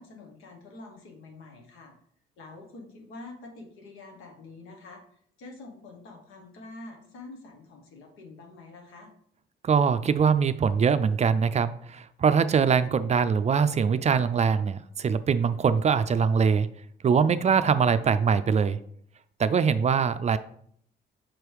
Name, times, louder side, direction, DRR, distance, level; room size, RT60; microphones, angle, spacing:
voice 1, 0.0-1.9 2.4-5.0 5.4-9.1, left 2 dB, 90° left, 3 dB, 1.3 m, -46 dB
voice 2, 9.6-16.7 17.0-18.8 19.4-20.4, right 6 dB, 35° right, 12 dB, 0.4 m, -23 dB
6.0 x 3.3 x 4.7 m, 0.64 s
cardioid pair, 90°, 20 cm